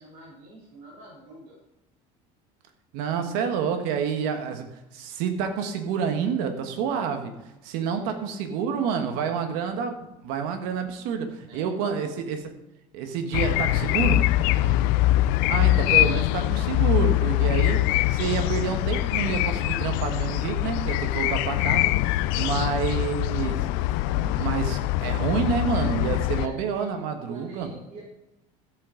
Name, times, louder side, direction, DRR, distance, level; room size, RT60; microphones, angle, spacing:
voice 1, 0.0-1.6 8.0-8.2 11.5-12.0 14.6-14.9 22.1-22.6 22.9-23.0 25.9-28.0, right 1 dB, 55° right, -6 dB, 3.7 m, -45 dB
voice 2, 2.9-4.7 4.9-7.3 7.6-12.5 12.9-14.3 15.5-27.7, right 7 dB, 70° right, 6 dB, 1.4 m, -28 dB
sound 1, 13.3-26.5, left 16 dB, 75° left, 0.5 m, -23 dB
13.5 x 8.5 x 3.8 m, 0.95 s
cardioid pair, 160°, 15 cm